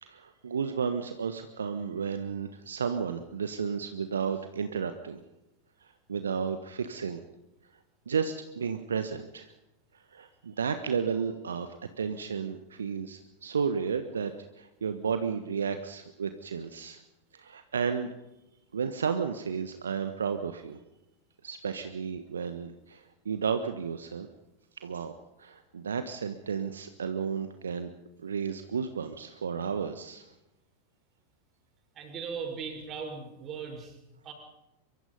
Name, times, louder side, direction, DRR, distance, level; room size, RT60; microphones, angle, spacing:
voice 1, 0.0-5.2 5.8-7.2 8.1-9.5 9.9-11.7 12.0-17.0 17.3-18.1 18.7-20.8 21.4-24.3 24.8-27.9 28.2-30.2, right 6 dB, 70° right, 9 dB, 1.3 m, -33 dB
voice 2, 31.9-34.3, right 5 dB, 30° right, 3 dB, 6.2 m, -39 dB
24.0 x 23.5 x 5.5 m, 0.92 s
figure-of-eight pair, 90°, 0 cm